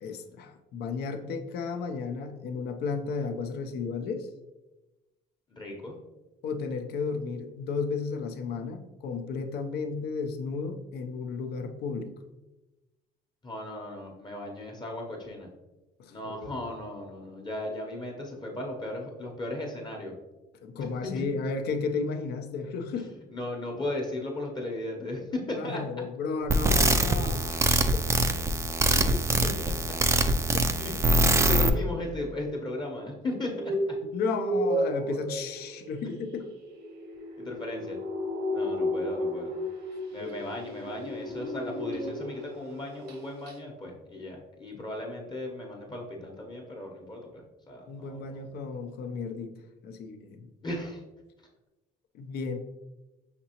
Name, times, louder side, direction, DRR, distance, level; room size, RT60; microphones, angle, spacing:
voice 1, 0.0-4.3 6.4-12.1 16.0-16.5 20.6-23.1 25.6-27.7 34.1-36.4 40.2-40.4 47.9-50.5 52.1-52.6, left 4 dB, 75° left, 7 dB, 0.5 m, -33 dB
voice 2, 5.5-6.0 13.4-15.5 16.1-20.1 20.8-21.2 22.9-23.0 23.3-25.8 28.9-29.5 30.8-30.9 31.3-33.7 36.0-36.2 37.4-38.0 38.5-39.5 40.1-48.4 50.6-51.0, left 1 dB, 25° left, 0 dB, 0.8 m, -36 dB
sound 1, 26.5-31.7, right 2 dB, 15° right, 0.3 m, -24 dB
sound 2, 33.3-42.6 42.9-43.2 43.5-43.6, equal, 75° right, 0.9 m, -33 dB
5.8 x 2.9 x 2.8 m, 1.1 s
cardioid pair, 110°, 17 cm